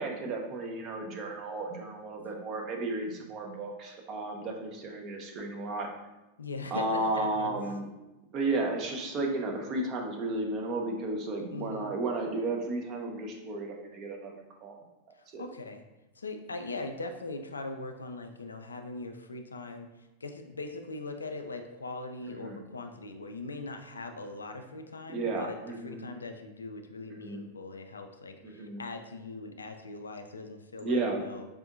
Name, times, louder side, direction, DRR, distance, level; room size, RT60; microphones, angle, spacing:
voice 1, 0.0-5.9 6.7-7.9 8.3-14.7 15.3-15.4 22.2-22.6 25.1-26.0 27.1-27.4 28.4-28.8 30.8-31.2, right 2 dB, 35° right, 1 dB, 0.6 m, -33 dB
voice 2, 6.4-7.7 11.5-11.9 15.4-15.8 16.2-19.9 20.2-25.6 25.8-31.5, left 3 dB, 75° left, 6 dB, 0.3 m, -40 dB
4.8 x 2.6 x 2.4 m, 1.0 s
figure-of-eight pair, 90°, 0 cm